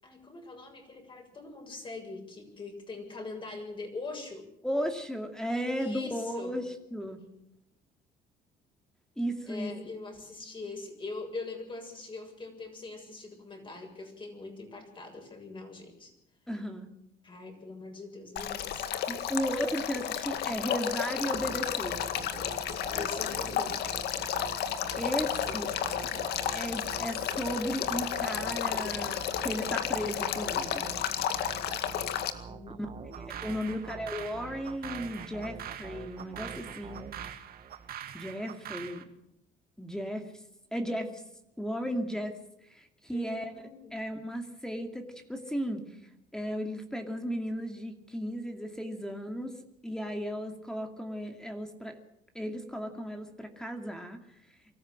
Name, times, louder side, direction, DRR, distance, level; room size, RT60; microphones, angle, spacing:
voice 1, 0.0-4.4 5.8-6.6 9.5-16.1 17.2-18.9 23.0-23.8 25.5-25.6 32.5-33.9 43.1-44.0, left 3 dB, 30° left, 4 dB, 7.2 m, -42 dB
voice 2, 4.6-7.2 9.2-9.7 16.5-16.9 19.1-22.0 25.0-25.7 26.5-30.9 32.8-32.9 33.1-37.1 38.1-39.1 39.8-40.3 40.7-41.2 41.6-42.4 42.7-43.5 43.9-46.0 46.3-49.6 49.8-52.0 52.3-54.2, equal, 5° left, 5 dB, 2.5 m, -35 dB
Male speech man speaking / Stream / Trickle dribble, 18.4-32.3, left 9 dB, 75° left, 2.0 m, -32 dB
sound 1, 21.3-37.9, right 6 dB, 35° right, 1.2 m, -46 dB
sound 2, 33.1-39.0, right 10 dB, 60° right, 2.3 m, -44 dB
24.0 x 14.0 x 7.7 m, 0.81 s
cardioid pair, 110°, 17 cm